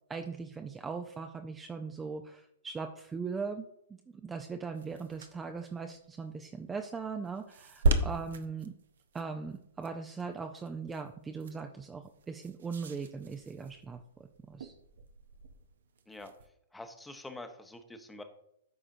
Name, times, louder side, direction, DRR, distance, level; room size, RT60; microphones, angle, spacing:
voice 1, 0.1-8.7 9.1-14.7, right 5 dB, 15° right, 5 dB, 0.5 m, -40 dB
sound 1, 4.7-16.5, right 2 dB, 65° right, 0.7 m, -38 dB
voice 2, 16.7-18.2, left 2 dB, 5° left, 7 dB, 0.9 m, -46 dB
13.0 x 4.8 x 2.7 m, 0.75 s
figure-of-eight pair, 110°, 0 cm